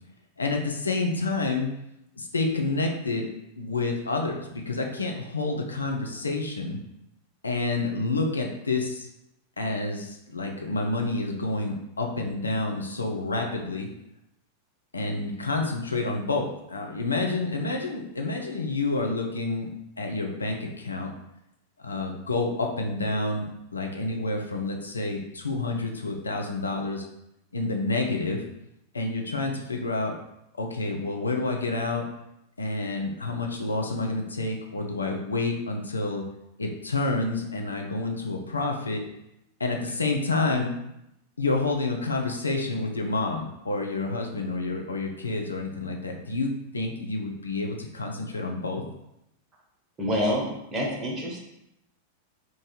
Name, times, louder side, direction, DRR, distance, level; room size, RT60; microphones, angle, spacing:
voice 1, 0.4-1.7 2.2-3.3 3.6-6.8 7.4-9.1 9.6-13.9 14.9-19.7 20.0-21.1 21.8-27.0 27.5-28.4 28.9-30.1 30.5-32.1 32.6-36.2 36.6-39.0 39.6-40.8 41.4-48.8, left 3 dB, 75° left, 2 dB, 0.5 m, -29 dB
voice 2, 50.0-51.4, equal, 20° right, -2 dB, 1.0 m, -27 dB
3.0 x 2.6 x 3.8 m, 0.84 s
figure-of-eight pair, 90°, 0 cm